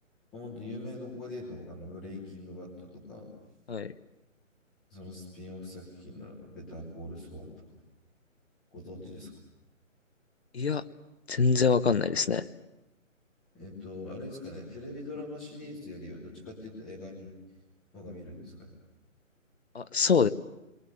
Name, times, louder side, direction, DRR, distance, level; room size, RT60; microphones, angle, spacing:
voice 1, 0.3-3.3 4.9-7.6 8.7-9.4 13.5-17.3 17.9-18.7, left 2 dB, ahead, -6 dB, 0.9 m, -42 dB
voice 2, 11.3-12.4 19.7-20.3, left 5 dB, 50° left, 13 dB, 1.0 m, -25 dB
29.5 x 23.0 x 6.6 m, 0.94 s
hypercardioid pair, 175°, 40 cm